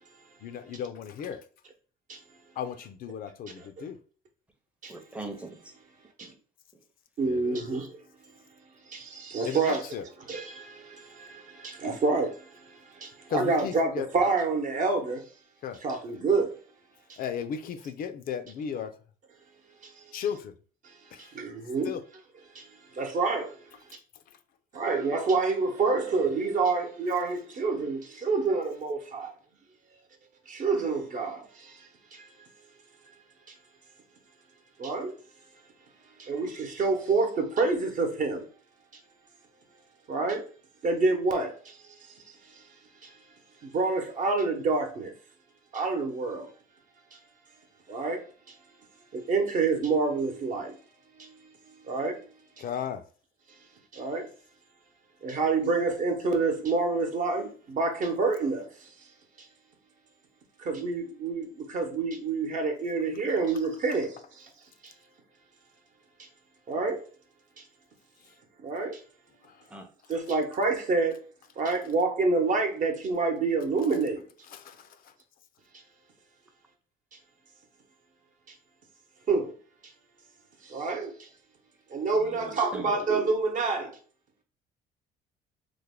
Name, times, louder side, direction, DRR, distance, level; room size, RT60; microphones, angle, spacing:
voice 1, 0.4-1.4 2.6-4.0 7.2-7.6 9.4-10.0 13.3-14.1 15.6-15.8 17.2-18.9 20.1-20.5 21.1-21.3 21.8-22.0 52.6-53.0 69.4-69.6 74.5-75.1, left 7 dB, 60° left, 0.4 m, -35 dB
voice 2, 4.9-5.6 6.2-6.3 69.7-69.9 82.2-83.0, right 2 dB, 5° right, 0.6 m, -41 dB
voice 3, 7.2-7.9 8.9-9.8 10.3-12.3 13.0-15.2 15.8-16.5 21.3-21.9 23.0-23.5 24.7-29.3 30.5-31.4 34.8-35.1 36.2-38.4 40.1-40.5 40.8-41.5 43.7-45.1 45.7-46.5 47.9-48.2 49.1-50.7 51.9-52.2 53.9-54.3 55.2-58.7 60.6-64.2 66.7-67.0 68.6-69.0 70.1-71.2 71.6-74.2 79.3-79.5 80.7-81.1 81.9-83.9, right 3 dB, 50° right, 0.9 m, -27 dB
3.2 x 2.1 x 3.6 m
cardioid pair, 110°, 17 cm